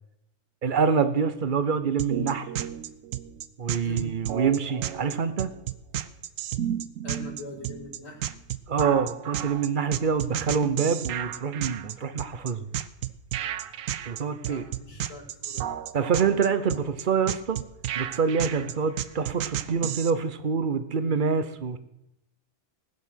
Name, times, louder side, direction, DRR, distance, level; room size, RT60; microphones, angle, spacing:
voice 1, 0.6-2.5 3.6-5.5 8.7-12.7 14.1-14.6 15.9-17.6 18.0-21.8, right 6 dB, 45° right, 11 dB, 0.9 m, -26 dB
sound 1, 2.0-20.1, right 11 dB, 85° right, 1.1 m, -32 dB
voice 2, 7.0-8.3 14.4-15.7, left 2 dB, 50° left, 1 dB, 2.6 m, -41 dB
19.5 x 8.0 x 6.3 m, 0.89 s
omnidirectional pair, 1.4 m